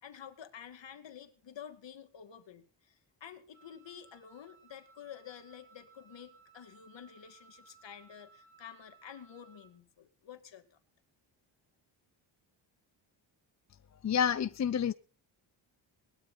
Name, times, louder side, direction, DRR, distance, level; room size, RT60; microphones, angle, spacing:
voice 1, 0.0-10.8, left 8 dB, 60° left, 2.6 m, -50 dB
Wind instrument woodwind instrument, 3.5-9.8, right 5 dB, 40° right, 6.5 m, -61 dB
voice 2, 14.0-14.9, left 8 dB, 35° left, 0.6 m, -28 dB
19.5 x 12.5 x 4.0 m
supercardioid pair, 65°, 49 cm